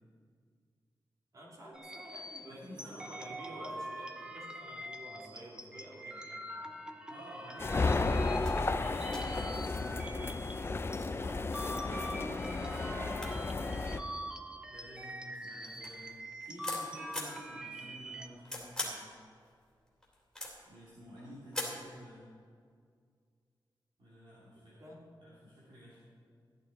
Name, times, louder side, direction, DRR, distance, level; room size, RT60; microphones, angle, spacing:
voice 1, 1.3-6.9 7.6-10.7 24.7-25.0, equal, 45° right, -4 dB, 2.8 m, -50 dB
sound 1, 1.7-11.0 11.4-18.3, equal, 10° right, 0.8 m, -44 dB
voice 2, 2.5-3.7 7.1-8.9 11.0-11.4 11.7-13.9 14.7-16.1 16.4-19.1 20.7-22.2 24.0-24.9 25.2-26.0, equal, 75° right, -8 dB, 2.9 m, -51 dB
sound 2, 7.6-14.0, left 3 dB, 30° left, 0.4 m, -33 dB
sound 3, 8.4-8.6 9.1-10.0 10.7-11.3 12.1-12.2 12.5-12.6 12.8-14.8 15.3-17.4 18.0-19.1 19.4-20.8 21.5-21.9, left 1 dB, 5° left, 2.7 m, -42 dB
14.5 x 11.0 x 4.1 m, 2.1 s
wide cardioid pair, 175°, 8 cm